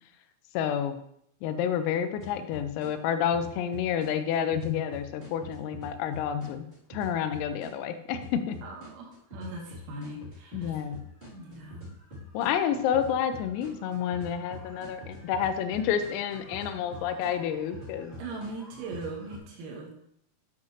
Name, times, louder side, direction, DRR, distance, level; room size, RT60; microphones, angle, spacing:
voice 1, 0.6-1.0 1.4-6.6 6.9-8.6 10.5-11.0 12.4-18.1, left 8 dB, 85° left, 9 dB, 3.4 m, -29 dB
sound 1, 2.2-2.9 3.3-7.7 8.1-19.4, equal, 15° right, 2.1 m, -45 dB
voice 2, 8.6-10.8 11.3-11.8 18.2-20.1, right 2 dB, 90° right, 0 dB, 4.4 m, -40 dB
9.4 x 7.7 x 3.2 m, 0.73 s
omnidirectional pair, 5.9 m